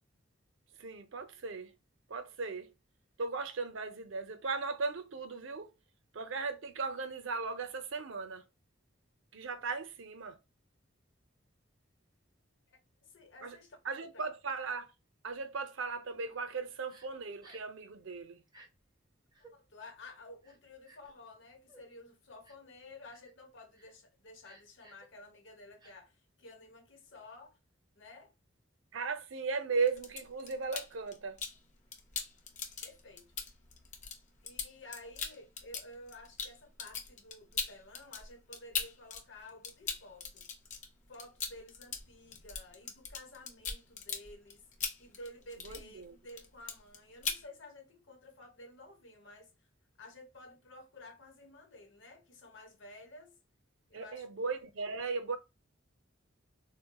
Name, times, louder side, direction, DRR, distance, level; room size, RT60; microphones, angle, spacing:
voice 1, 0.8-1.8 2.1-2.7 3.2-5.7 6.1-8.5 9.3-10.4 13.4-13.6 13.8-14.9 15.2-18.4 28.9-31.4 45.6-46.2 53.9-55.4, right 4 dB, 75° right, 0.5 m, -37 dB
voice 2, 12.7-13.8 19.5-27.6 27.9-28.3 32.8-33.4 34.4-40.5 41.1-44.7 45.0-49.5 50.0-53.4 53.9-54.3, left 2 dB, 65° left, 0.9 m, -53 dB
Crying sobbing, 16.9-17.1 17.4-17.7 18.5-18.7 19.3-19.5 20.4-21.1 21.7-21.8 22.4-22.7 23.1-23.3 23.7-23.9 24.4-25.1 25.8-25.9, right 2 dB, 20° right, 0.7 m, -58 dB
sound 1, 29.8-31.6 31.9-39.2 39.5-46.0 46.3-47.0 47.2-47.4, left 6 dB, 40° left, 0.6 m, -40 dB
4.0 x 2.1 x 2.2 m
head